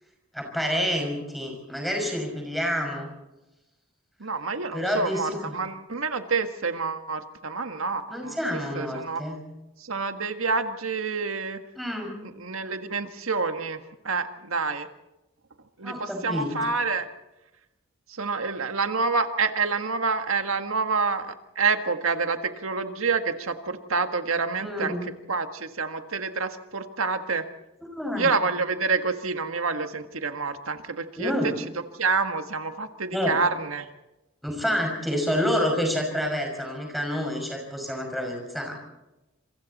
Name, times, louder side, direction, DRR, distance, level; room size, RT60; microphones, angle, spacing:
voice 1, 0.3-3.1 4.7-5.5 8.1-9.4 11.8-12.1 15.8-16.5 24.6-25.2 28.0-28.3 31.2-31.5 33.1-33.4 34.4-38.7, equal, ahead, 1 dB, 5.7 m, -28 dB
voice 2, 4.2-9.2 9.8-11.6 12.2-14.9 15.8-17.1 18.1-27.5 28.2-31.5 31.9-33.9, right 4 dB, 85° right, 7 dB, 1.7 m, -28 dB
27.5 x 23.0 x 4.2 m, 0.98 s
head